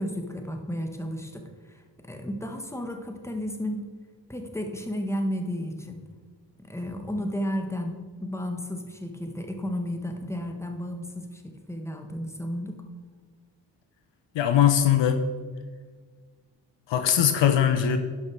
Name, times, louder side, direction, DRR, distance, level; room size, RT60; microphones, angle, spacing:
voice 1, 0.0-3.8 4.3-6.1 6.6-12.8, equal, 5° left, 4 dB, 1.6 m, -33 dB
voice 2, 14.3-15.2 16.9-18.0, left 9 dB, 60° left, 8 dB, 0.8 m, -21 dB
11.0 x 5.7 x 4.7 m, 1.5 s
hypercardioid pair, 40°, 49 cm